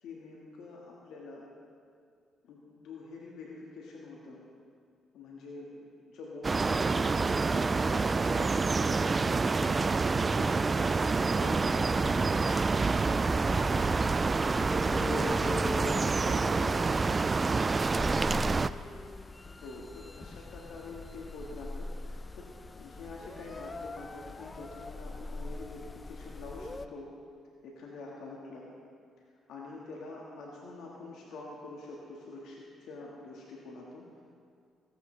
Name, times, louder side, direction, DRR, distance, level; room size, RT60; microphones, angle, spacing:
voice 1, 0.0-1.5 2.4-4.4 5.1-9.8 10.3-14.2 14.5-15.8 16.2-17.3 19.4-22.5 22.7-27.1 27.6-28.6 29.5-34.2, left 2 dB, 75° left, -3 dB, 1.6 m, -45 dB
sound 1, 6.4-18.7, right 4 dB, 35° right, 0.3 m, -27 dB
sound 2, 11.5-26.9, left 3 dB, 30° left, 0.5 m, -42 dB
17.0 x 10.0 x 3.3 m, 2.2 s
supercardioid pair, 60°, 0 cm